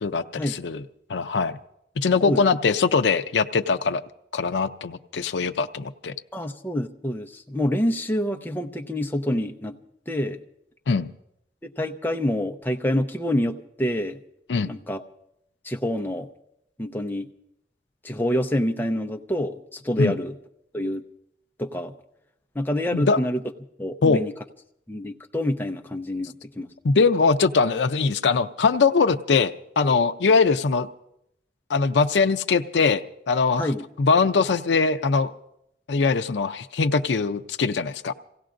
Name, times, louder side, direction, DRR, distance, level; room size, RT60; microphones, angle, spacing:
voice 1, 0.0-0.8 1.1-1.6 2.0-4.0 4.3-6.1 10.9-11.1 14.5-14.7 20.0-20.2 22.9-23.2 24.0-24.2 26.8-30.9 31.7-33.7 34.0-35.3 35.9-38.1, left 4 dB, 80° left, 7 dB, 0.5 m, -22 dB
voice 2, 6.3-9.7 10.1-10.4 11.6-14.2 14.7-15.0 15.6-16.3 16.8-17.3 18.0-20.3 20.7-21.0 21.6-21.9 22.5-23.4 23.8-24.3 24.9-26.7 33.6-33.8, left 1 dB, 10° left, 4 dB, 0.7 m, -27 dB
28.0 x 17.0 x 2.5 m, 0.79 s
head